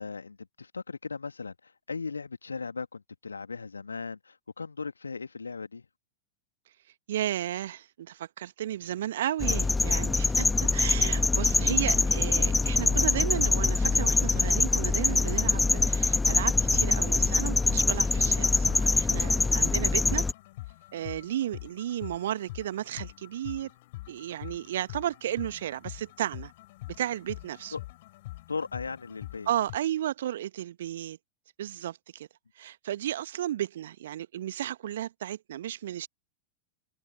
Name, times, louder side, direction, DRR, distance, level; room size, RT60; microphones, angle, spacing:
voice 1, 0.0-5.9 27.7-27.8 28.5-29.5, left 4 dB, 75° left, 1.9 m, -37 dB
voice 2, 7.1-20.3 20.9-23.7 24.1-26.5 27.0-27.7 29.5-31.2 31.6-32.3 32.6-36.1, right 12 dB, 60° right, 1.4 m, -33 dB
sound 1, 9.4-20.3, left 3 dB, 10° left, 1.5 m, -24 dB
sound 2, 11.0-29.8, left 18 dB, 50° left, 4.1 m, -44 dB
figure-of-eight pair, 90°, 0 cm